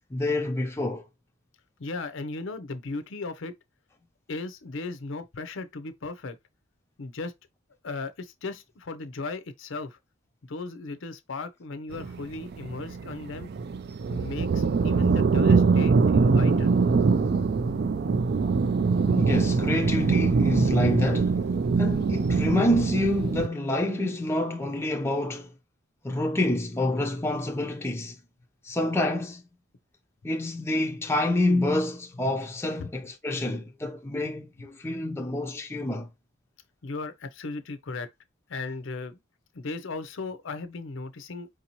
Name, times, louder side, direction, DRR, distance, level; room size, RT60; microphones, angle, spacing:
voice 1, 0.1-1.0 19.1-21.3 21.8-25.5 26.0-28.2 28.6-29.4 30.2-36.1, left 1 dB, 10° left, 0.5 m, -27 dB
voice 2, 1.8-3.5 4.3-6.4 7.0-7.3 7.8-10.0 10.4-13.5 14.1-16.7 17.7-17.8 32.8-32.9 36.8-38.1 38.5-39.2 39.5-41.5, left 3 dB, 60° left, 0.6 m, -36 dB
sound 1, 11.9-23.5, right 4 dB, 50° right, 0.3 m, -23 dB
4.8 x 2.7 x 2.9 m
head